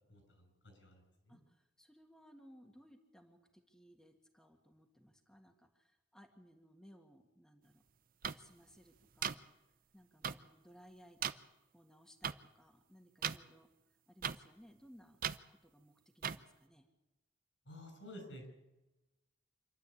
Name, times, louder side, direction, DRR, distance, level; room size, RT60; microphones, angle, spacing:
voice 1, 0.1-1.0 1.3-1.4 17.7-18.5, left 1 dB, 80° left, 5 dB, 6.8 m, -52 dB
voice 2, 1.3-7.8 8.3-9.4 9.9-11.3 11.7-13.7 14.1-15.2 15.5-16.9, equal, 5° left, 2 dB, 1.7 m, -62 dB
sound 1, 8.2-8.3 9.2-9.3 10.2-10.3 11.2-11.3 12.2-12.3 13.2-13.4 14.2-14.4 15.2-15.4 16.2-16.4, right 8 dB, 50° right, 0.7 m, -36 dB
26.5 x 12.0 x 8.5 m, 1.0 s
head